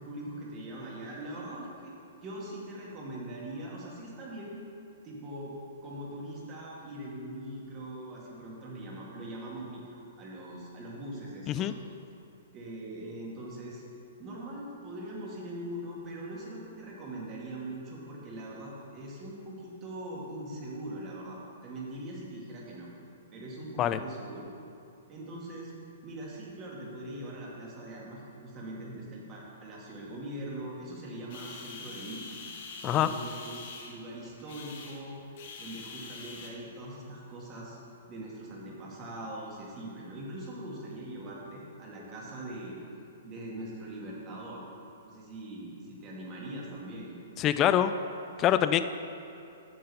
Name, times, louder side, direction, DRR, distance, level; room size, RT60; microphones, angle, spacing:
voice 1, 0.0-1.9 2.2-4.6 5.0-5.5 5.8-11.7 12.5-13.8 14.2-22.9 23.3-24.5 25.1-25.7 26.0-32.3 32.8-35.2 35.6-37.8 38.1-42.8 43.2-44.7 45.0-47.2, right 1 dB, 30° right, -4 dB, 2.0 m, -41 dB
sound 1, 31.3-36.5, left 4 dB, 60° left, 1.4 m, -45 dB
voice 2, 47.4-47.9 48.4-48.8, left 11 dB, 30° left, 11 dB, 0.4 m, -24 dB
7.6 x 6.7 x 5.5 m, 2.7 s
hypercardioid pair, 135°, 0 cm